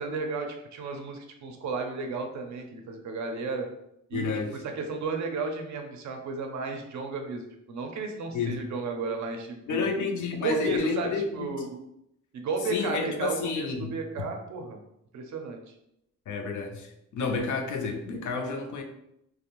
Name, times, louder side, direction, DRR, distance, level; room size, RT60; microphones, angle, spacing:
voice 1, 0.0-3.7 4.1-4.3 4.6-9.9 10.4-11.8 12.3-14.8 15.1-15.6, right 4 dB, 60° right, 4 dB, 0.4 m, -33 dB
voice 2, 4.1-4.6 8.3-8.6 9.7-11.5 12.7-14.0 16.3-18.8, left 4 dB, 60° left, 3 dB, 0.5 m, -30 dB
2.4 x 2.0 x 2.9 m, 0.80 s
wide cardioid pair, 155°, 34 cm